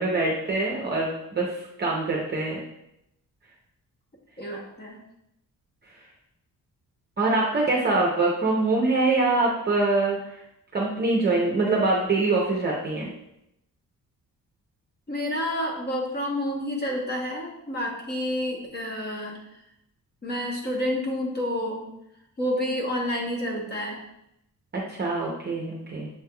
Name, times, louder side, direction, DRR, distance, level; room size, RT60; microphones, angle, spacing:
voice 1, 0.0-2.6 7.2-10.4 10.7-13.1 24.7-26.1, right 3 dB, 30° right, -3 dB, 0.7 m, -24 dB
voice 2, 4.4-5.0 15.1-19.4 20.2-21.8 22.4-24.0, left 1 dB, 30° left, -1 dB, 0.9 m, -29 dB
6.8 x 3.3 x 2.2 m, 0.81 s
wide cardioid pair, 140°, 34 cm